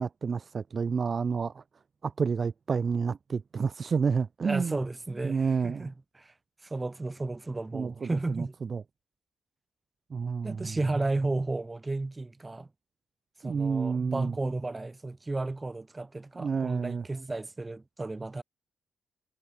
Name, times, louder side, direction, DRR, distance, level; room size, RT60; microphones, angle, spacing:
voice 1, 0.0-1.6 2.0-4.8 5.2-5.9 7.7-8.8 10.1-10.8 13.4-14.3 16.4-17.0, right 5 dB, 40° right, 0.6 m, -30 dB
voice 2, 4.4-6.3 6.6-8.5 10.4-12.7 13.4-18.4, right 2 dB, 20° right, 1.4 m, -33 dB
cardioid pair, 105°, 0 cm